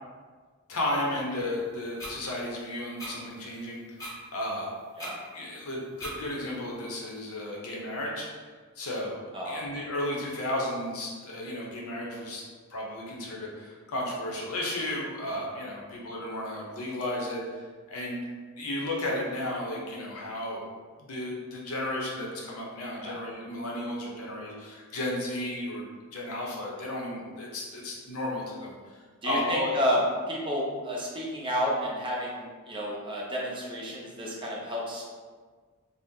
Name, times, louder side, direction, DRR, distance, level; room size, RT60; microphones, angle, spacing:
voice 1, 0.7-3.8 4.3-4.7 5.3-8.3 8.8-9.2 9.5-12.4 12.7-17.6 17.9-18.2 18.6-20.6 21.0-29.7, left 1 dB, 75° left, -2 dB, 0.7 m, -33 dB
sound 1, 2.0-2.1 3.0-3.1 4.0-4.1 5.0-5.1 6.0-6.1, equal, 15° left, 0.9 m, -38 dB
voice 2, 29.2-30.0 30.3-35.0, equal, 20° right, -4 dB, 0.5 m, -31 dB
2.7 x 2.1 x 3.6 m, 1.5 s
head